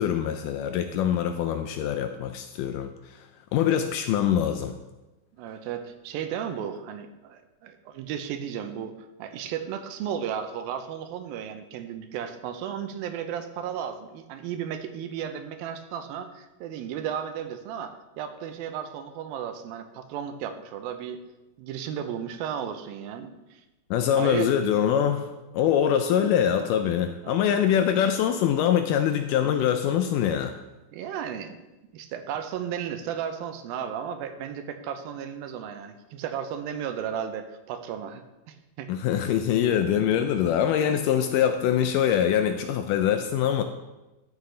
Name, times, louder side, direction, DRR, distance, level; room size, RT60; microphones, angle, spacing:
voice 1, 0.0-3.3 3.5-4.7 23.9-25.3 25.5-30.5 38.9-43.6, left 9 dB, 80° left, 7 dB, 1.9 m, -24 dB
voice 2, 5.4-21.2 21.6-23.6 24.2-24.5 27.2-27.6 30.9-31.6 31.9-38.2 38.5-38.9, right 8 dB, 85° right, 8 dB, 2.5 m, -34 dB
13.0 x 6.5 x 3.3 m, 1.0 s
omnidirectional pair, 4.1 m